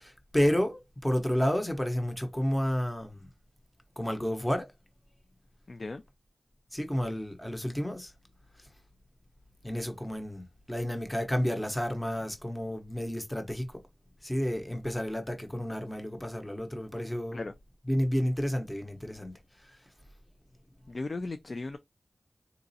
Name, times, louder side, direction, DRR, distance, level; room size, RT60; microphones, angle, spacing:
voice 1, 0.0-3.3 4.0-4.7 6.7-8.1 8.6-8.7 9.6-13.8 14.2-17.4 17.9-19.8, equal, 10° left, 0.7 m, -31 dB
voice 2, 5.7-6.0 17.3-17.5 20.9-21.8, left 3 dB, 55° left, 0.3 m, -36 dB
3.9 x 2.3 x 2.6 m
wide cardioid pair, 70°, 0 cm